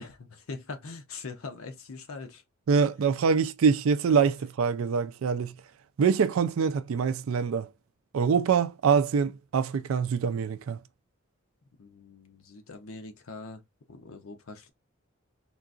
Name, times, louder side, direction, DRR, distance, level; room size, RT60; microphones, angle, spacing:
voice 1, 0.0-2.4 11.8-13.6 13.9-14.7, left 3 dB, 80° left, 0.7 m, -42 dB
voice 2, 2.7-5.5 6.0-7.7 8.1-10.8, right 6 dB, 70° right, 0.4 m, -24 dB
3.8 x 2.4 x 2.4 m
head